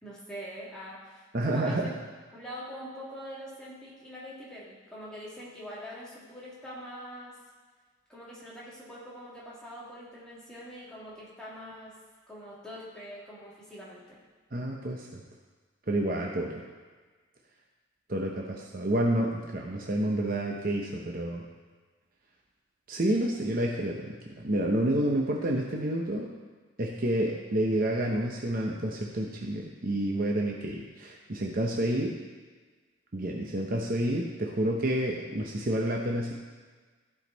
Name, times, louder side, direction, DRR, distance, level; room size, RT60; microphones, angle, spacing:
voice 1, 0.0-2.0 2.3-7.4 8.1-12.0 12.3-14.2, equal, 5° left, -8 dB, 2.4 m, -44 dB
voice 2, 1.3-1.9 14.5-15.2 15.9-16.6 18.1-21.4 22.9-26.3 26.8-32.1 33.1-36.3, right 1 dB, 45° right, -1 dB, 0.9 m, -29 dB
15.0 x 5.1 x 4.0 m, 1.4 s
head